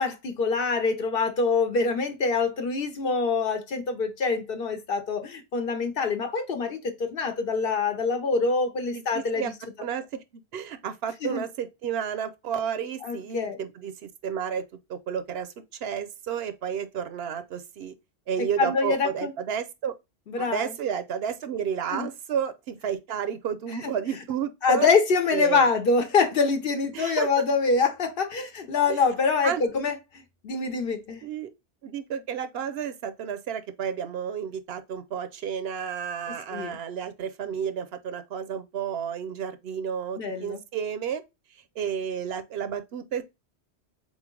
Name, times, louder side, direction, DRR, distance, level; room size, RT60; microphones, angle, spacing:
voice 1, 0.0-9.5 11.2-11.4 13.0-13.6 18.4-19.3 20.3-20.7 21.9-22.1 23.8-23.9 24.6-31.3 36.5-36.8 40.2-40.6, left 4 dB, 60° left, 0.9 m, -25 dB
voice 2, 8.9-9.5 9.8-14.6 14.9-15.5 15.8-17.9 18.3-20.0 20.4-24.9 25.3-25.7 26.9-27.3 28.9-29.0 29.4-29.6 31.2-31.5 31.8-41.2 41.5-43.2, right 8 dB, 70° right, 0.8 m, -31 dB
3.9 x 3.2 x 3.7 m
omnidirectional pair, 1.1 m